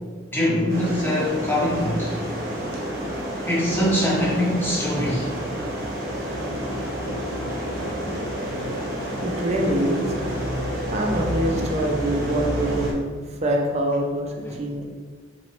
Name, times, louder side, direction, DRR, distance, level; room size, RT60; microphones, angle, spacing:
voice 1, 0.3-2.2 3.4-5.3 14.5-14.6, left 1 dB, 10° left, -6 dB, 1.0 m, -23 dB
sound 1, 0.7-12.9, right 1 dB, 50° right, 0.9 m, -29 dB
Piano, 6.2-11.8, left 2 dB, 85° left, 0.3 m, -37 dB
voice 2, 9.2-10.2 10.9-14.9, right 1 dB, 35° right, 1 dB, 0.5 m, -25 dB
4.2 x 3.0 x 3.0 m, 1.5 s
head